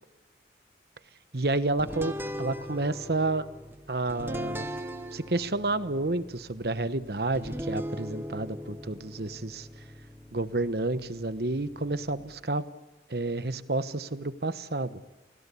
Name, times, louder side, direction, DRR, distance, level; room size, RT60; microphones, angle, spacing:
voice 1, 1.3-3.4 3.9-4.7 5.1-9.7 10.3-12.6 13.1-15.0, right 2 dB, 60° right, 12 dB, 1.1 m, -30 dB
sound 1, 1.8-12.4, equal, 10° right, 1.1 m, -40 dB
29.0 x 17.5 x 8.5 m, 1.1 s
head